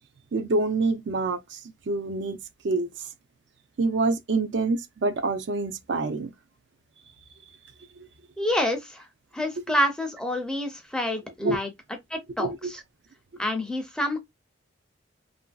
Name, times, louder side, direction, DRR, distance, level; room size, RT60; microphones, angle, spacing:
voice 1, 0.3-1.6 1.9-2.4 2.6-2.9 3.8-6.3 11.4-11.6 12.4-12.6, right 3 dB, 60° right, 0.4 m, -26 dB
voice 2, 8.4-9.1 9.3-11.7 12.1-12.8 13.4-14.2, left 1 dB, 5° left, 0.5 m, -28 dB
3.0 x 2.5 x 2.3 m
head